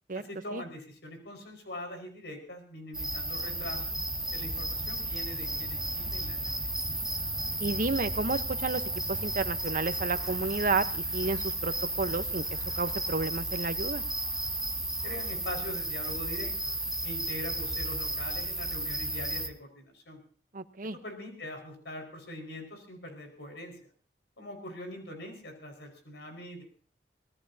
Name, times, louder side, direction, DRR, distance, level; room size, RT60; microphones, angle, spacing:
voice 1, 0.1-4.0 4.3-6.7 15.0-16.8 17.0-20.2 20.9-23.8 24.4-26.6, left 1 dB, 75° left, 3 dB, 5.2 m, -42 dB
sound 1, 2.9-19.5, right 1 dB, 5° right, 1.4 m, -33 dB
voice 2, 7.6-8.8 9.1-12.4 12.8-14.0 20.5-21.0, right 3 dB, 50° right, 10 dB, 1.0 m, -31 dB
25.0 x 19.0 x 2.8 m, 0.42 s
head